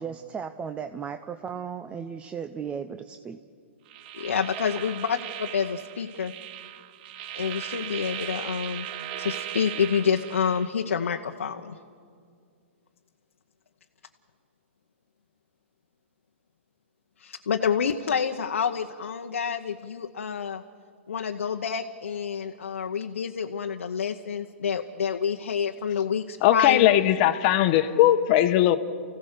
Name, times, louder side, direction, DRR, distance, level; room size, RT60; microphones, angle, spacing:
voice 1, 0.0-3.4, right 7 dB, 15° right, 9 dB, 0.7 m, -35 dB
sound 1, 3.9-10.7, right 11 dB, 45° right, 0.8 m, -38 dB
voice 2, 4.1-6.3 7.3-8.9 9.2-11.8 17.2-20.6 21.1-26.9, left 7 dB, 80° left, 3 dB, 1.0 m, -28 dB
voice 3, 26.4-28.8, left 13 dB, 45° left, 9 dB, 1.1 m, -19 dB
29.5 x 16.0 x 6.6 m, 2.2 s
hypercardioid pair, 130°, 7 cm